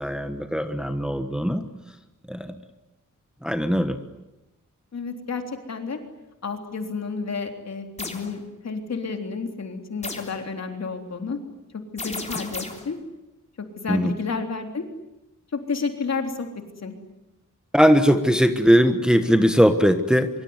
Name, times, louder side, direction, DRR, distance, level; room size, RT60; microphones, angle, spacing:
voice 1, 0.0-1.6 2.3-2.5 3.4-4.0 13.9-14.1 17.7-20.3, equal, ahead, 7 dB, 1.3 m, -20 dB
voice 2, 4.9-5.4 5.7-6.0 6.4-11.4 11.9-13.0 13.8-14.8 15.7-16.5 16.8-16.9, left 4 dB, 55° left, 4 dB, 3.6 m, -30 dB
sound 1, 8.0-8.3 10.0-10.4 12.0-12.9, left 2 dB, 20° left, 3.5 m, -34 dB
24.5 x 24.0 x 9.7 m, 0.97 s
wide cardioid pair, 160°, 31 cm